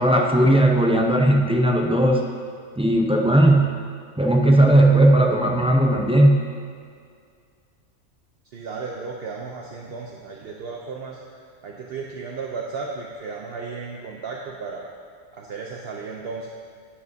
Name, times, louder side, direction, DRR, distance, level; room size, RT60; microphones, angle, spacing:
voice 1, 0.0-2.2 2.8-3.7 4.2-6.4, right 1 dB, 10° right, 0 dB, 0.4 m, -17 dB
voice 2, 8.5-11.2 11.6-14.9 15.3-16.5, right 4 dB, 55° right, 0 dB, 0.8 m, -34 dB
10.0 x 9.8 x 2.7 m, 2.2 s
omnidirectional pair, 1.3 m